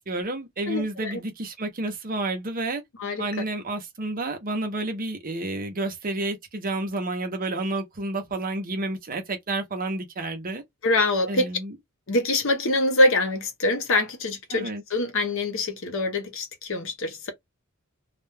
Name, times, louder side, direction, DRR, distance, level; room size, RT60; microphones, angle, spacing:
voice 1, 0.0-2.8 3.2-10.6 11.3-11.7 14.5-14.8, right 2 dB, 45° right, 0.8 m, -30 dB
voice 2, 0.7-1.2 3.0-3.3 10.8-11.5 12.1-17.3, left 2 dB, 70° left, 0.8 m, -24 dB
2.4 x 2.2 x 3.3 m
head